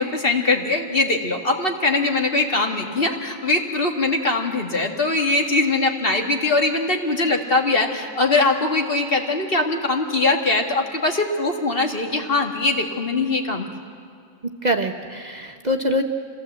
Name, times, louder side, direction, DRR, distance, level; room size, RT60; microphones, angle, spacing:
voice 1, 0.0-13.7, left 2 dB, 45° left, 2 dB, 1.8 m, -21 dB
voice 2, 14.4-16.0, equal, 40° right, 3 dB, 0.9 m, -24 dB
26.0 x 16.0 x 7.9 m, 2.2 s
omnidirectional pair, 1.3 m